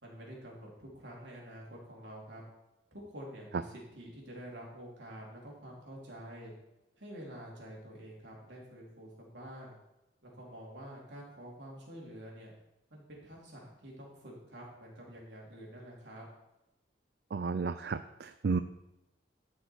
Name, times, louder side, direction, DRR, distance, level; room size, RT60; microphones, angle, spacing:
voice 1, 0.0-2.4 2.9-6.5 7.0-9.8 10.2-12.5 12.9-16.3, equal, 80° right, -3 dB, 3.8 m, -48 dB
voice 2, 17.3-18.6, right 4 dB, 60° right, 11 dB, 0.4 m, -32 dB
13.5 x 6.6 x 4.8 m, 0.93 s
head